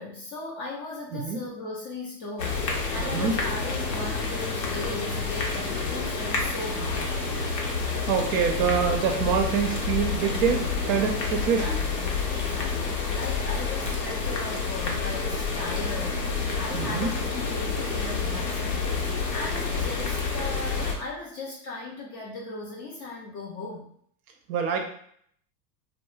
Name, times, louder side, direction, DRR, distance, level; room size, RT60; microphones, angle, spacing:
voice 1, 0.0-7.1 11.5-23.9, left 2 dB, 25° left, -3 dB, 0.3 m, -38 dB
Light rain, 2.4-20.9, left 4 dB, 85° left, 0.8 m, -29 dB
voice 2, 3.0-3.3 7.7-11.6 16.7-17.1 24.5-24.8, right 7 dB, 45° right, 3 dB, 0.5 m, -26 dB
2.2 x 2.0 x 3.1 m, 0.64 s
hypercardioid pair, 90°, 48 cm